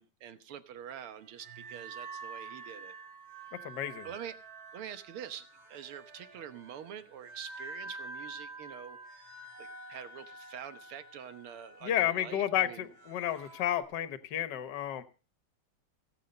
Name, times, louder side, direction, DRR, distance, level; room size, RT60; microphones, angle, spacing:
voice 1, 0.0-3.0 4.0-4.4 4.7-9.0 9.6-12.9, right 9 dB, 90° right, 11 dB, 2.0 m, -45 dB
sound 1, 1.2-13.8, right 3 dB, 65° right, 2.9 m, -48 dB
voice 2, 3.6-4.1 11.8-15.0, left 11 dB, 60° left, 11 dB, 1.6 m, -31 dB
18.0 x 8.5 x 5.3 m, 0.35 s
omnidirectional pair, 2.3 m